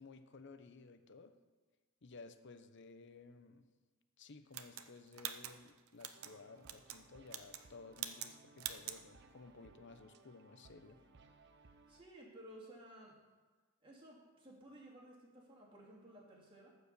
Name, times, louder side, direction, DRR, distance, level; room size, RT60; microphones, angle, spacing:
voice 1, 0.0-1.3 2.0-3.6 4.2-11.0, left 3 dB, 60° left, 10 dB, 0.7 m, -56 dB
sound 1, 4.5-6.3 6.6-7.0 7.3-7.7 8.0-8.3 8.6-9.0, right 11 dB, 90° right, 0.7 m, -45 dB
sound 2, 6.1-12.0, right 3 dB, 55° right, 0.7 m, -64 dB
voice 2, 11.6-13.1 13.8-16.7, right 1 dB, 25° right, -4 dB, 2.7 m, -56 dB
14.5 x 4.9 x 6.8 m, 1.3 s
head